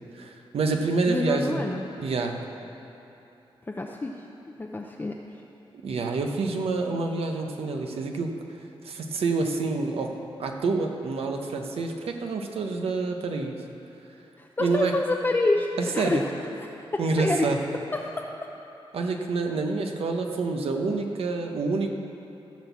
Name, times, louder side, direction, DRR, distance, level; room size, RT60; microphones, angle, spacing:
voice 1, 0.1-1.6 2.0-2.4 5.8-8.3 8.8-13.5 14.6-14.9 15.8-16.2 17.0-17.6 18.9-21.9, right 3 dB, 80° right, 3 dB, 1.0 m, -27 dB
voice 2, 1.1-1.8 3.7-5.2 14.4-15.7 15.9-16.3 16.9-17.5 17.9-18.3, left 2 dB, 20° left, 0 dB, 0.6 m, -27 dB
15.0 x 6.3 x 7.0 m, 2.9 s
wide cardioid pair, 120°, 10 cm